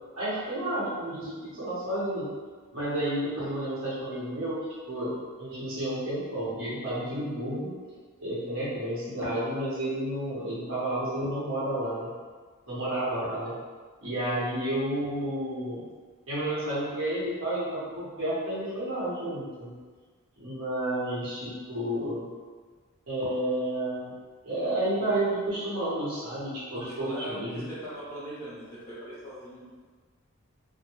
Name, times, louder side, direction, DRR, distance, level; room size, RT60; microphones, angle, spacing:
voice 1, 0.1-2.3 2.7-4.6 4.9-7.7 8.2-12.1 12.7-13.6 14.0-15.9 16.3-19.8 20.4-22.3 23.1-24.1 24.4-27.6, right 1 dB, 70° right, -9 dB, 1.0 m, -31 dB
voice 2, 26.7-29.7, right 1 dB, 15° left, -10 dB, 0.7 m, -40 dB
2.2 x 2.1 x 2.9 m, 1.5 s
head